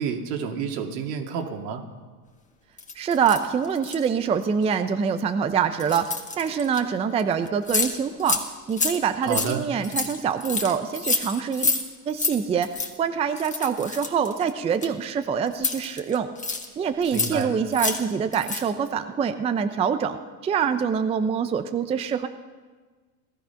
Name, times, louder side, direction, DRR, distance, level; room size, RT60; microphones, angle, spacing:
voice 1, 0.0-1.8 9.2-9.6 17.1-17.5, right 6 dB, 75° right, 3 dB, 2.3 m, -29 dB
sound 1, 2.8-4.1 4.6-4.8 5.8-6.8 7.2-7.3 7.5-7.9 8.2-8.4 8.7-11.8 12.1-12.3 12.6-12.9 13.4-15.1 15.5-16.7 17.0-17.4 17.7-18.0 18.3-18.7, left 4 dB, 15° left, 1.6 m, -28 dB
voice 2, 3.0-6.1 6.4-8.4 8.7-16.3 16.8-22.3, right 7 dB, 15° right, 9 dB, 0.4 m, -25 dB
18.0 x 13.0 x 5.7 m, 1.4 s
supercardioid pair, 125°, 49 cm